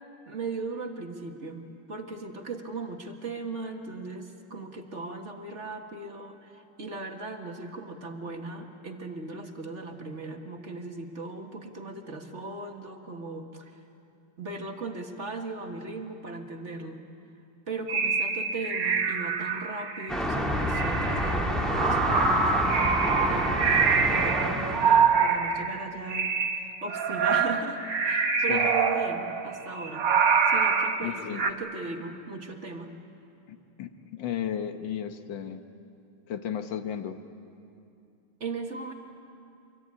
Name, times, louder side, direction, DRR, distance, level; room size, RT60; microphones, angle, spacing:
voice 1, 0.3-1.6 1.9-13.8 14.4-17.0 17.7-22.5 23.0-30.1 30.5-32.9 38.4-38.9, right 3 dB, 40° right, 3 dB, 1.8 m, -37 dB
sound 1, 17.9-20.1 20.6-25.8 26.1-31.5, right 5 dB, 70° right, 2.0 m, -25 dB
sound 2, 20.1-25.1, equal, ahead, 2.4 m, -28 dB
voice 2, 31.0-31.4 33.5-35.6 36.3-37.2, left 9 dB, 80° left, 8 dB, 1.9 m, -34 dB
25.0 x 23.0 x 9.7 m, 2.6 s
omnidirectional pair, 2.0 m